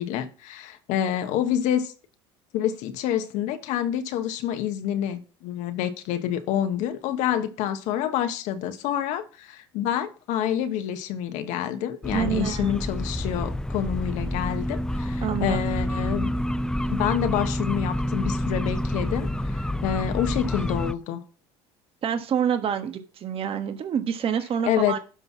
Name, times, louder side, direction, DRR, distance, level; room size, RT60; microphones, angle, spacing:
voice 1, 0.0-1.9 2.5-16.3 16.9-21.2 24.6-25.0, left 10 dB, 65° left, 1.3 m, -27 dB
sound 1, 12.0-20.9, left 1 dB, 5° left, 0.6 m, -28 dB
voice 2, 12.1-12.8 15.2-15.6 22.0-25.0, right 8 dB, 45° right, 1.4 m, -27 dB
11.5 x 4.0 x 5.9 m
hypercardioid pair, 75°, 14 cm